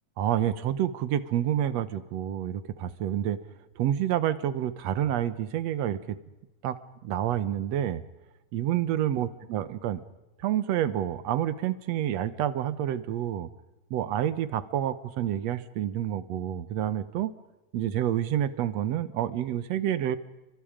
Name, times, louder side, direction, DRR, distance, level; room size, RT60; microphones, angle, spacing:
voice 1, 0.2-3.4 3.8-6.2 6.6-8.0 8.5-10.0 10.4-13.5 13.9-17.3 17.7-20.2, right 11 dB, 65° right, 14 dB, 2.0 m, -28 dB
30.0 x 25.0 x 5.1 m, 1.0 s
omnidirectional pair, 3.7 m